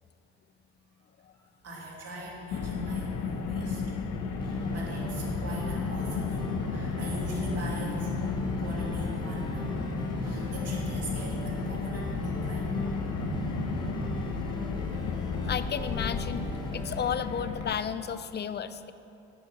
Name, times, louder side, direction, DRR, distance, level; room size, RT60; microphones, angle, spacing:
voice 1, 1.6-3.8 4.4-9.7 10.2-12.9 13.2-14.3, right 1 dB, 55° right, -3 dB, 2.3 m, -42 dB
Car, 2.5-17.7, left 5 dB, 80° left, 0.9 m, -33 dB
sound 1, 4.2-14.2, right 2 dB, 10° right, 1.0 m, -39 dB
sound 2, 4.4-17.1, left 2 dB, 15° left, 1.2 m, -41 dB
voice 2, 15.4-18.9, left 8 dB, 35° left, 13 dB, 0.4 m, -33 dB
8.0 x 7.2 x 5.9 m, 2.9 s
cardioid pair, 90°, 30 cm